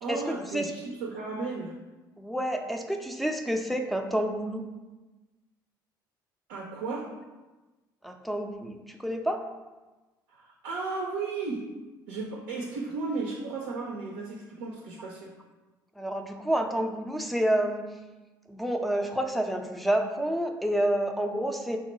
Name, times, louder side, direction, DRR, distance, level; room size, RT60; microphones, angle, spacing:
voice 1, 0.0-1.7 6.5-7.1 10.3-11.7 12.1-15.3, right 4 dB, 70° right, 0 dB, 0.5 m, -34 dB
voice 2, 2.2-4.6 8.0-9.4 16.0-17.8 18.5-21.8, right 1 dB, ahead, 4 dB, 0.4 m, -29 dB
3.7 x 2.1 x 4.1 m, 1.2 s
figure-of-eight pair, 55°, 12 cm